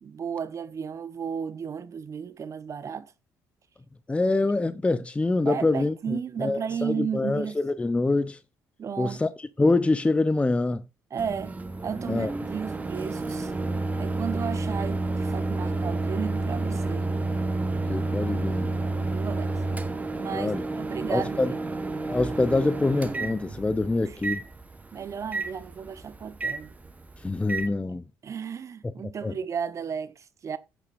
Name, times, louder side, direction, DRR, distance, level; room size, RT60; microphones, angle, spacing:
voice 1, 0.0-3.1 5.4-7.6 8.8-9.2 11.1-11.6 11.8-13.5 14.0-17.1 19.1-19.6 20.1-21.8 24.0-24.2 24.9-26.7 27.9-30.6, right 7 dB, 45° right, 0.9 m, -34 dB
voice 2, 4.1-8.4 9.0-10.8 12.1-12.3 17.8-18.7 20.3-20.6 21.1-21.5 22.1-24.4 27.2-28.0 29.2-29.4, left 2 dB, 15° left, 0.6 m, -25 dB
Microwave oven, 11.2-27.7, right 2 dB, 20° right, 1.0 m, -30 dB
15.0 x 6.8 x 2.5 m
supercardioid pair, 75°, 7 cm